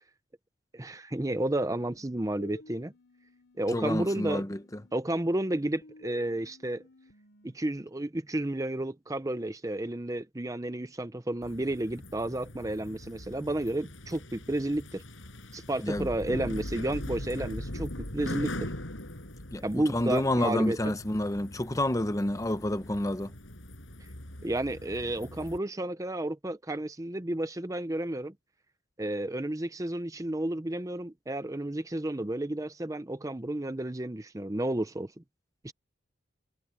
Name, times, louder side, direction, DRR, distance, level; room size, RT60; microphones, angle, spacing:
voice 1, 0.7-2.9 3.6-4.4 4.9-6.8 7.4-15.0 15.5-18.7 19.6-20.8 24.4-28.3 29.0-35.2 35.6-35.7, right 1 dB, 15° right, 0.6 m, -32 dB
sound 1, 1.1-4.1 4.5-7.5, left 1 dB, 65° left, 6.9 m, -54 dB
voice 2, 3.7-4.8 15.8-16.1 19.5-23.3, left 1 dB, 15° left, 0.8 m, -29 dB
sound 2, 11.4-25.6, left 1 dB, 85° left, 6.5 m, -41 dB
head